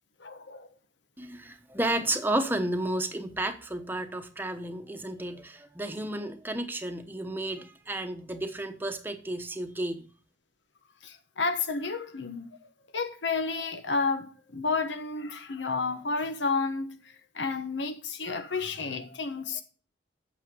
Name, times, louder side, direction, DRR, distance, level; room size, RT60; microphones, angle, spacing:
voice 1, 0.2-0.7 11.0-12.6 12.9-19.6, left 4 dB, 85° left, 1.2 m, -31 dB
voice 2, 1.2-10.0, right 1 dB, 10° right, 1.0 m, -32 dB
9.1 x 6.6 x 5.1 m
head